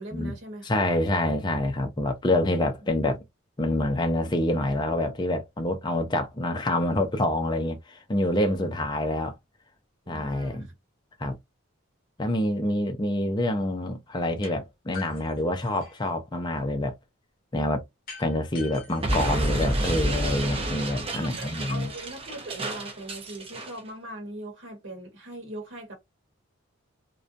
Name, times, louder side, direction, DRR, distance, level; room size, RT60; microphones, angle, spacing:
voice 1, 0.0-0.8 8.6-8.7 10.1-10.6 21.1-25.9, right 1 dB, 60° right, 1.0 m, -40 dB
voice 2, 0.6-3.2 3.6-9.3 10.1-10.7 11.2-11.4 12.2-16.9 17.5-17.8 18.2-21.9, left 1 dB, 20° left, 0.4 m, -27 dB
sound 1, 14.4-14.6 14.9-16.1 18.1-20.1, left 5 dB, 45° left, 1.0 m, -44 dB
Explosion, 19.0-23.8, right 1 dB, 25° right, 0.5 m, -29 dB
2.6 x 2.2 x 2.5 m
head